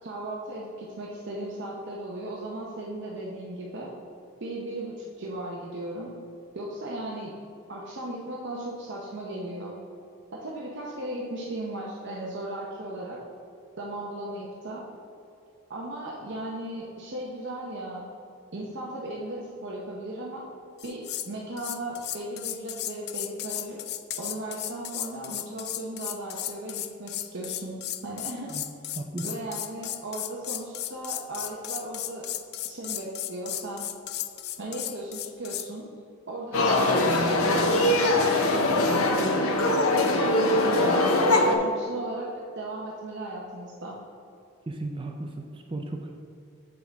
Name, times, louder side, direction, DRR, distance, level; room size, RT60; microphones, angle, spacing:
voice 1, 0.0-3.9 4.4-6.1 6.5-7.3 7.7-9.8 10.3-13.2 13.8-14.8 15.7-18.1 18.5-20.4 20.8-23.8 24.2-27.8 28.0-28.5 29.2-32.3 32.6-33.9 34.6-35.9 36.3-39.6 40.2-44.0, right 1 dB, 55° right, -3 dB, 0.8 m, -36 dB
sound 1, 20.8-21.3 21.6-35.7, left 13 dB, 50° left, 0.3 m, -35 dB
sound 2, 36.5-41.6, left 2 dB, 75° left, 0.7 m, -22 dB
voice 2, 44.7-46.2, right 2 dB, 25° right, 3 dB, 0.4 m, -35 dB
7.8 x 6.1 x 3.5 m, 2.6 s
head